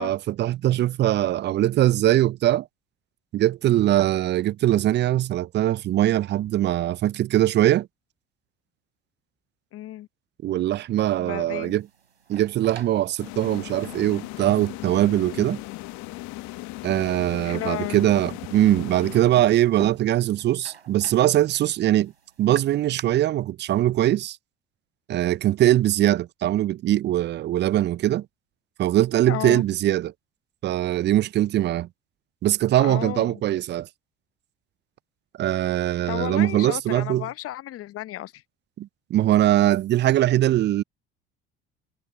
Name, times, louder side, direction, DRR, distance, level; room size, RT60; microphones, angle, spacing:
voice 1, 0.0-2.7 3.3-7.9 10.4-11.9 12.3-15.6 16.8-22.1 22.4-24.4 25.1-28.3 28.8-30.1 30.6-31.9 32.4-33.9 35.4-37.3 38.8-40.8, right 13 dB, 35° right, 0.4 m, -21 dB
voice 2, 9.7-10.1 11.2-11.7 17.4-18.0 29.3-29.6 32.8-33.4 36.1-38.4, left 14 dB, 45° left, 0.8 m, -33 dB
sound 1, 11.6-23.0, right 7 dB, 90° right, 3.8 m, -47 dB
sound 2, 13.2-19.8, left 21 dB, 60° left, 1.3 m, -38 dB
hypercardioid pair, 55°, 31 cm